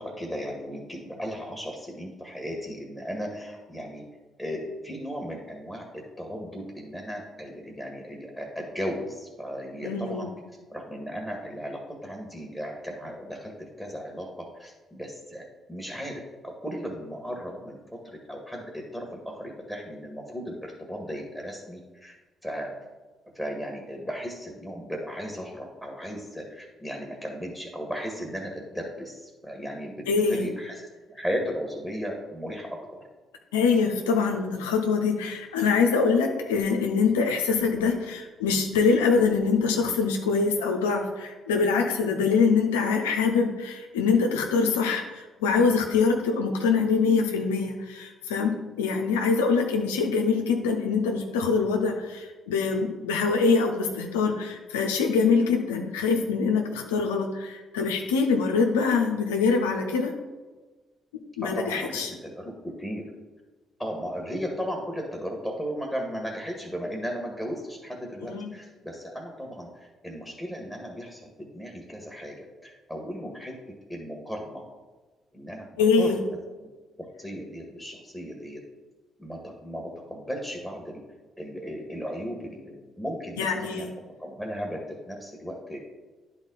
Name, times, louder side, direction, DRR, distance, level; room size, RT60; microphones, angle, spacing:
voice 1, 0.0-4.0 4.4-10.3 10.7-18.0 18.3-22.2 22.4-22.7 23.3-30.8 31.1-33.0 61.4-63.0 63.8-73.5 73.9-74.6 75.3-76.7 77.2-78.6 79.2-81.0 81.4-83.9 84.2-85.8, equal, ahead, 0 dB, 2.0 m, -36 dB
voice 2, 9.8-10.3 30.1-30.5 33.5-48.5 48.8-60.1 61.4-62.1 68.2-68.5 75.8-76.2 83.4-83.9, left 5 dB, 90° left, 3 dB, 0.6 m, -24 dB
10.5 x 4.2 x 4.1 m, 1.2 s
hypercardioid pair, 50°, 0 cm